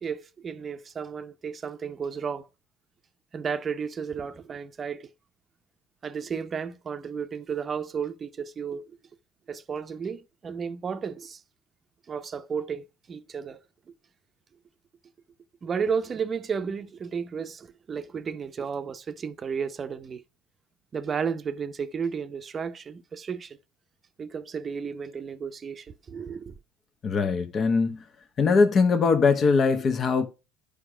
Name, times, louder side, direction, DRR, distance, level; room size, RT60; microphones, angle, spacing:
voice 1, 0.0-2.5 3.3-5.1 6.0-8.8 9.5-11.4 12.1-13.6 15.6-20.2 20.9-23.6 24.2-26.5, right 6 dB, 35° right, 0.7 m, -33 dB
voice 2, 27.0-28.0 28.4-30.3, left 4 dB, 40° left, 1.0 m, -21 dB
9.9 x 5.1 x 4.9 m
hypercardioid pair, 80°, 0 cm